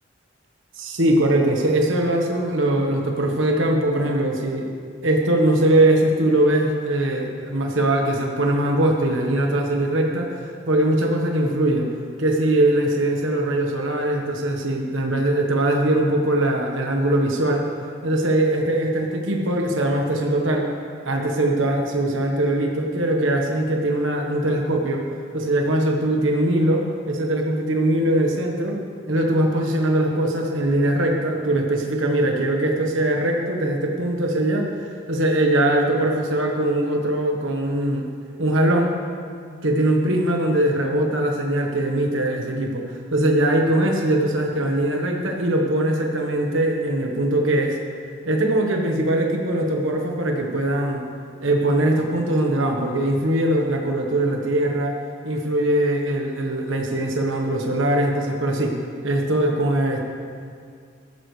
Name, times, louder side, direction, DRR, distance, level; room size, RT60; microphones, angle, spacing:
voice 1, 0.8-4.7 5.0-11.9 12.2-17.7 18.0-20.7 21.0-25.0 25.3-28.8 29.1-38.1 38.4-38.9 39.6-47.8 48.2-51.0 51.4-55.0 55.2-58.7 59.0-60.0, right 1 dB, 75° right, 1 dB, 1.3 m, -21 dB
14.5 x 13.0 x 3.3 m, 2.2 s
head